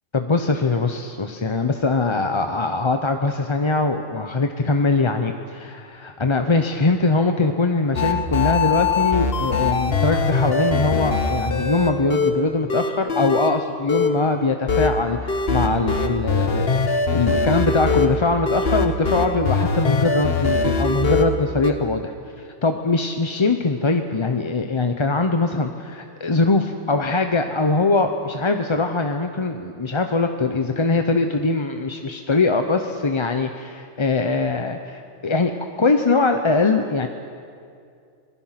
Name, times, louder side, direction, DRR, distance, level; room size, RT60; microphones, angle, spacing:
voice 1, 0.1-22.1 22.6-35.5 35.8-37.1, left 3 dB, 30° left, 6 dB, 0.7 m, -22 dB
sound 1, 8.0-12.4 12.7-13.6 13.9-14.2 14.7-21.7, left 4 dB, 55° left, 1.3 m, -22 dB
26.5 x 19.5 x 5.9 m, 2.4 s
omnidirectional pair, 1.2 m